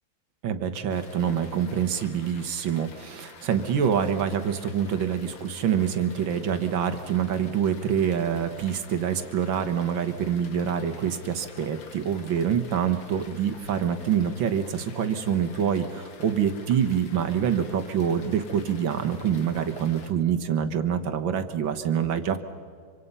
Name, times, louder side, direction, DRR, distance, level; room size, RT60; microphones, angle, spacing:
voice 1, 0.4-22.4, right 8 dB, 80° right, 8 dB, 2.0 m, -26 dB
sound 1, 0.9-20.1, left 4 dB, 80° left, 2.5 m, -49 dB
26.0 x 25.5 x 5.5 m, 2.2 s
omnidirectional pair, 2.1 m